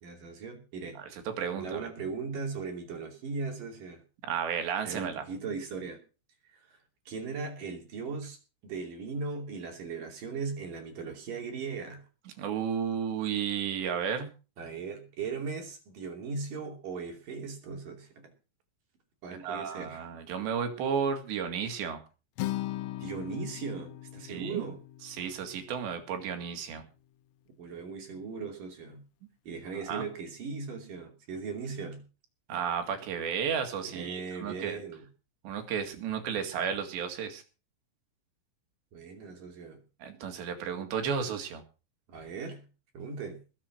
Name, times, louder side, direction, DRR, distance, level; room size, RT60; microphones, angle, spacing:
voice 1, 0.0-1.0 1.5-4.0 4.8-6.0 6.4-6.8 7.1-8.4 8.6-12.0 14.6-18.3 19.2-20.0 23.0-24.8 27.6-29.0 29.5-32.0 33.8-35.0 38.9-39.8 42.1-42.6 42.9-43.4, right 4 dB, 45° right, 4 dB, 3.9 m, -38 dB
voice 2, 1.0-1.9 4.2-5.2 12.4-14.3 19.4-22.0 24.3-24.6 25.1-26.9 29.9-30.0 32.5-34.8 35.4-37.4 40.0-41.6, right 7 dB, 65° right, 6 dB, 4.1 m, -33 dB
Acoustic guitar, 22.4-26.6, left 15 dB, 85° left, 3.7 m, -39 dB
20.0 x 7.8 x 6.1 m, 0.34 s
omnidirectional pair, 5.9 m